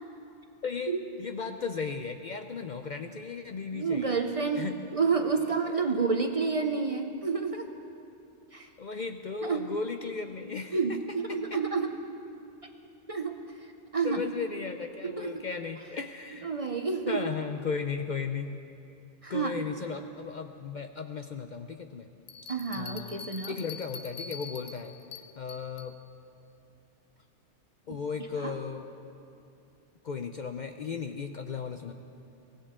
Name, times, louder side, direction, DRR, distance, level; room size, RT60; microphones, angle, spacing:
voice 1, 0.6-4.2 4.5-4.8 5.4-5.7 8.8-11.0 11.3-11.6 14.0-16.5 17.1-18.5 19.3-22.1 22.7-24.9 25.4-26.0 27.9-28.9 30.0-31.9, left 5 dB, 50° left, 6 dB, 0.6 m, -36 dB
voice 2, 3.7-4.7 4.9-7.7 8.5-8.7 9.4-9.7 10.7-11.9 13.1-13.4 13.9-14.2 15.0-15.5 16.4-17.2 19.2-19.5 22.5-23.5 27.9-28.0 28.4-28.5, right 5 dB, 35° right, 5 dB, 0.7 m, -29 dB
Bell, 22.3-26.0, left 5 dB, 75° left, 1.1 m, -44 dB
23.0 x 16.5 x 3.7 m, 2.7 s
omnidirectional pair, 1.2 m